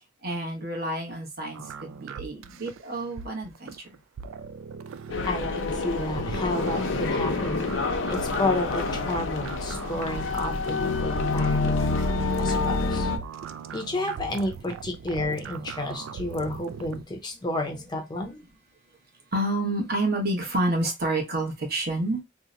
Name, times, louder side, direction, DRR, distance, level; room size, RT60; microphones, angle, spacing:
voice 1, 0.2-4.0 11.5-11.6 19.3-22.2, right 1 dB, 50° right, 0.9 m, -29 dB
sound 1, 1.5-17.0, right 6 dB, 85° right, 0.3 m, -40 dB
sound 2, 5.1-13.2, left 3 dB, 75° left, 0.6 m, -27 dB
voice 2, 5.2-7.7 8.1-11.6 12.4-13.1 13.7-18.4, left 1 dB, 20° left, 0.5 m, -31 dB
2.8 x 2.1 x 3.7 m
head